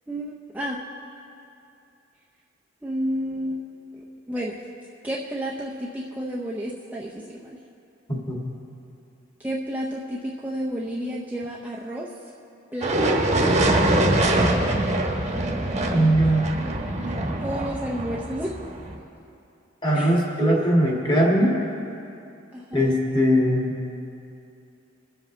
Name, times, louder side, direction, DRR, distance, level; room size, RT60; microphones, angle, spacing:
voice 1, 0.1-0.8 2.8-3.6 4.0-4.6 5.0-7.6 9.4-12.1 12.7-13.9 17.0-17.2 17.4-18.5 19.9-20.6 22.5-22.9, equal, 10° right, -4 dB, 0.6 m, -31 dB
sound 1, 12.8-19.0, right 1 dB, 35° right, 1.1 m, -23 dB
voice 2, 15.9-16.5 19.8-21.6 22.7-23.8, equal, 25° left, -3 dB, 1.9 m, -20 dB
21.5 x 7.7 x 3.2 m, 2.6 s
head